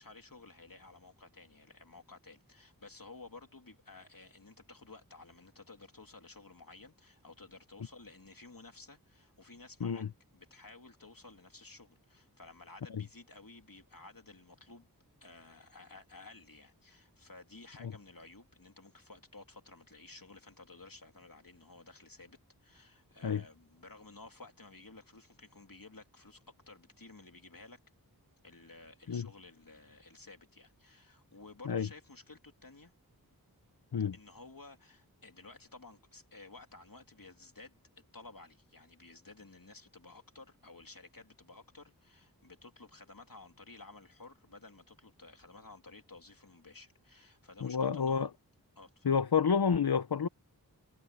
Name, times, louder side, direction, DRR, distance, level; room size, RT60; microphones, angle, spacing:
voice 1, 0.0-10.0 10.3-14.9 15.2-27.8 28.4-32.9 34.1-48.3 48.8-49.1, left 3 dB, 60° left, 2.8 m, -54 dB
voice 2, 47.6-48.3 49.0-50.3, left 6 dB, 80° left, 0.7 m, -29 dB
wide cardioid pair, 45°, 38 cm